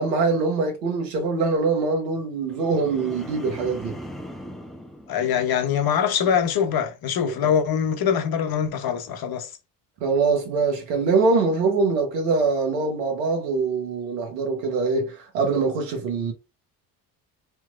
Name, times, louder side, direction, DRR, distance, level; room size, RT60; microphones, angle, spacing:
voice 1, 0.0-4.0 7.2-7.5 10.0-16.3, right 4 dB, 85° right, 1.2 m, -23 dB
sound 1, 2.5-5.9 6.3-6.7, equal, ahead, 0.6 m, -40 dB
voice 2, 5.1-9.5, left 8 dB, 45° left, 1.0 m, -23 dB
3.4 x 3.0 x 2.4 m
hypercardioid pair, 65°, 49 cm